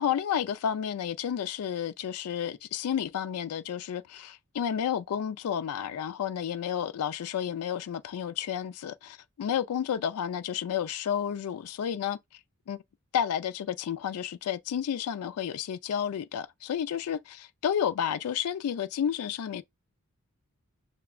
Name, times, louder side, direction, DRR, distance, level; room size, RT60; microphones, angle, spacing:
voice 1, 0.0-12.2 12.7-12.8 13.1-19.6, left 9 dB, 85° left, 0.3 m, -31 dB
5.8 x 2.2 x 2.3 m
head